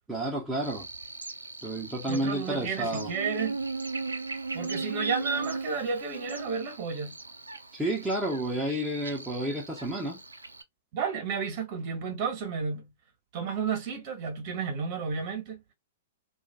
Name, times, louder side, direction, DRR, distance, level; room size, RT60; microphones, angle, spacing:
voice 1, 0.1-0.9 1.6-3.1 7.7-10.2, right 1 dB, 10° right, 0.8 m, -31 dB
Buzz, 0.6-10.6, right 3 dB, 85° right, 0.4 m, -37 dB
voice 2, 2.1-3.6 4.5-7.2 10.9-12.9 13.3-15.6, right 5 dB, 45° right, 1.2 m, -32 dB
2.4 x 2.4 x 2.3 m
figure-of-eight pair, 105°, 0 cm